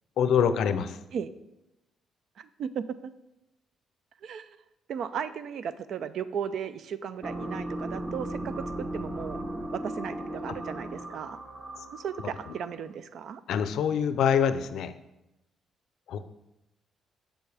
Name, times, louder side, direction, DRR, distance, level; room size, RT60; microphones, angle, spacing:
voice 1, 0.2-1.0 13.5-14.9 16.1-16.2, left 8 dB, 75° left, 11 dB, 0.5 m, -25 dB
voice 2, 2.4-3.1 4.2-4.6 4.9-9.4 9.7-11.4 11.9-13.4, right 7 dB, 70° right, 13 dB, 0.4 m, -36 dB
sound 1, 7.2-12.9, right 1 dB, 30° right, 1.1 m, -36 dB
7.5 x 7.0 x 3.4 m, 0.91 s
cardioid pair, 90°, 0 cm